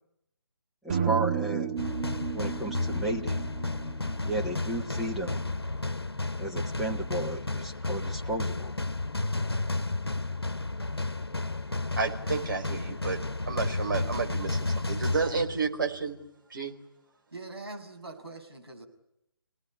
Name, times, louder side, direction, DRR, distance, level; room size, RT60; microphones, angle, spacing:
voice 1, 0.8-1.8 2.3-3.5 4.2-5.4 6.4-8.7, right 2 dB, ahead, -4 dB, 1.4 m, -33 dB
sound 1, 0.9-5.0, right 7 dB, 30° right, 1.5 m, -33 dB
sound 2, 1.8-16.0, left 2 dB, 80° left, 1.3 m, -32 dB
voice 2, 12.0-13.2 13.5-16.2 16.5-16.7, right 4 dB, 55° right, 3 dB, 4.9 m, -31 dB
voice 3, 17.3-18.8, right 2 dB, 75° right, 3 dB, 6.9 m, -42 dB
29.5 x 18.5 x 10.0 m, 0.82 s
figure-of-eight pair, 145°, 13 cm